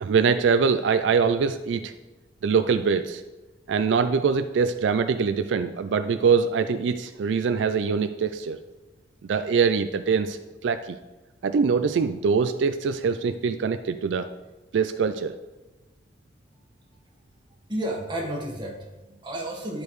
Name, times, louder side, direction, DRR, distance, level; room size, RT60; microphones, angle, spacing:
voice 1, 0.0-1.9 2.4-3.2 3.7-8.6 9.2-11.0 11.4-14.3 14.7-15.4, right 5 dB, 80° right, 10 dB, 0.4 m, -23 dB
voice 2, 17.7-19.8, right 1 dB, 25° right, -2 dB, 1.4 m, -32 dB
11.0 x 5.2 x 3.1 m, 1.1 s
head